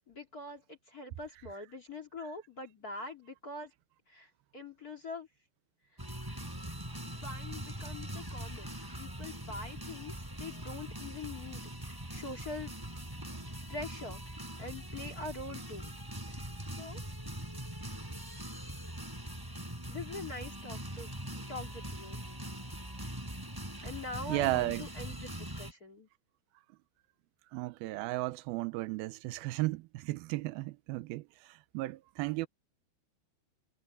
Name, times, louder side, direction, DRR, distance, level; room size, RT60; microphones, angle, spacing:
voice 1, 0.1-3.7 4.1-5.3 7.0-12.7 13.7-16.0 16.7-17.0 19.9-21.2 21.5-22.2 23.8-26.1, left 2 dB, 25° left, 2.2 m, -44 dB
sound 1, 6.0-25.7, right 1 dB, 5° right, 4.1 m, -42 dB
voice 2, 24.3-24.8 27.5-31.2 31.7-32.5, right 19 dB, 85° right, 2.2 m, -34 dB
omnidirectional pair, 5.1 m